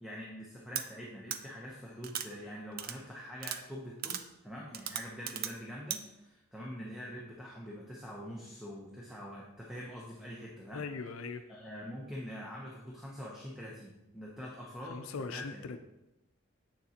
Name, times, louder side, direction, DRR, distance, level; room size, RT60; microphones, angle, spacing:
voice 1, 0.0-10.8 11.5-15.7, equal, 5° right, -4 dB, 0.7 m, -45 dB
sound 1, 0.7-0.8 1.3-1.4 2.0-2.3 2.8-2.9 3.4-3.6 4.0-4.2 4.7-5.5 5.9-6.0, right 9 dB, 45° right, 0.4 m, -36 dB
voice 2, 10.7-11.4 14.9-15.8, left 4 dB, 80° left, 9 dB, 0.5 m, -40 dB
7.9 x 6.7 x 2.9 m, 0.94 s
head